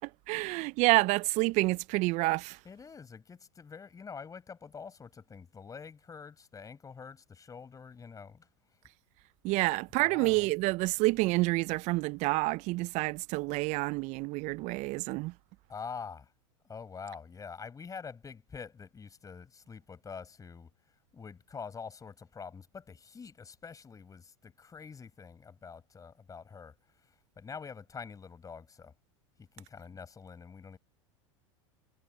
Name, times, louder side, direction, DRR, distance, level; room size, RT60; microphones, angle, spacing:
voice 1, 0.0-2.6 9.4-15.3, right 23 dB, 50° right, 0.6 m, -28 dB
voice 2, 2.7-8.5 10.0-10.4 15.7-16.3 16.7-20.7 21.1-26.7 27.4-28.9 29.4-30.8, left 5 dB, 20° left, 5.5 m, -46 dB
hypercardioid pair, 90°, 16 cm